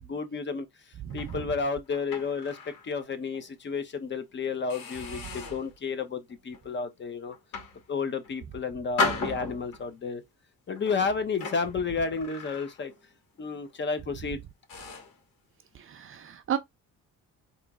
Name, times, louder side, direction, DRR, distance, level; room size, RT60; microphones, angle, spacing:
voice 1, 0.1-0.7 1.1-2.6 2.8-7.3 7.9-10.2 10.7-12.9 13.4-14.4, left 5 dB, 35° left, 0.9 m, -31 dB
voice 2, 1.0-1.4 15.7-16.6, right 9 dB, 40° right, 0.6 m, -33 dB
sound 1, 1.1-2.9 3.3-3.5 4.1-4.2 4.7-5.7 6.3-6.6 7.3-8.3 9.0-10.0 10.7-13.1 13.4-13.7 14.2-14.3 14.7-15.2, left 3 dB, 75° left, 2.3 m, -36 dB
4.2 x 3.0 x 3.6 m
cardioid pair, 150°, 34 cm